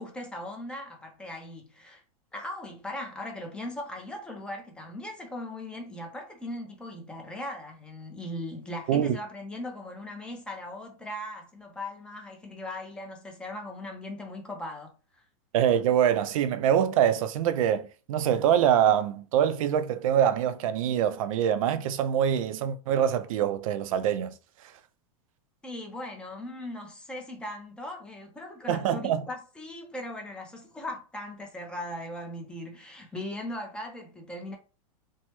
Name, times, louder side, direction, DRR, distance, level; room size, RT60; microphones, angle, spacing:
voice 1, 0.0-2.0 2.3-15.2 25.6-34.6, left 1 dB, 5° left, 0.5 m, -39 dB
voice 2, 15.5-24.3 28.7-29.2, right 9 dB, 65° right, 0.4 m, -24 dB
3.1 x 2.0 x 3.0 m
supercardioid pair, 160°, 19 cm